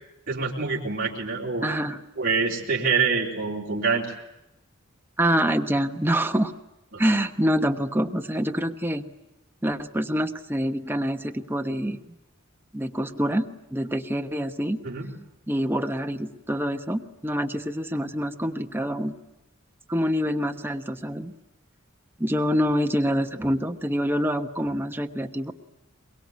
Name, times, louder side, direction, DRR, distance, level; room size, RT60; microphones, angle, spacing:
voice 1, 0.3-1.7 2.2-4.1 6.9-7.0 14.8-15.1, right 4 dB, 45° right, -4 dB, 3.9 m, -26 dB
voice 2, 1.6-2.0 5.2-6.5 7.0-9.1 9.6-12.0 12.7-14.8 15.5-19.1 19.9-21.3 22.2-25.5, equal, 10° right, 6 dB, 1.1 m, -26 dB
23.0 x 23.0 x 9.5 m, 0.93 s
head